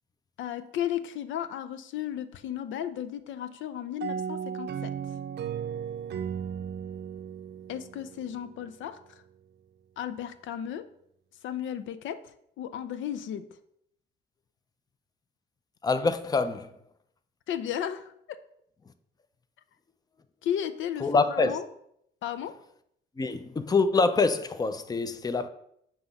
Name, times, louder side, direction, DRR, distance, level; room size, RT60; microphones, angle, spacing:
voice 1, 0.4-4.9 7.7-9.2 10.0-10.9 11.4-13.5 17.5-18.1 20.4-21.7 22.2-22.6, left 10 dB, 75° left, 0.5 m, -34 dB
sound 1, 4.0-8.6, right 8 dB, 60° right, 0.5 m, -35 dB
voice 2, 15.8-16.7 21.0-21.5 23.2-25.5, left 4 dB, 20° left, 0.5 m, -25 dB
7.5 x 2.9 x 5.4 m
cardioid pair, 90°, 20 cm